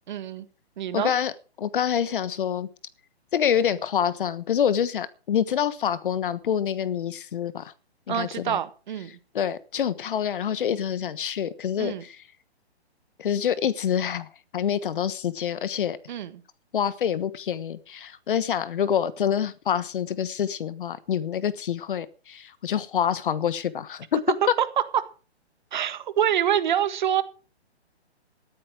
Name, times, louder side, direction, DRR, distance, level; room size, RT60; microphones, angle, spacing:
voice 1, 0.1-0.5 0.8-1.1 8.1-9.2 11.8-12.0 16.1-16.4 24.6-24.7 24.9-25.1 25.7-27.2, right 10 dB, 45° right, 12 dB, 1.7 m, -26 dB
voice 2, 0.9-1.3 1.6-2.7 3.3-7.7 8.1-8.6 9.3-12.2 13.2-14.3 14.5-16.0 16.7-24.2, left 8 dB, 50° left, 16 dB, 1.2 m, -26 dB
14.0 x 12.0 x 4.8 m, 0.35 s
hypercardioid pair, 155°, 33 cm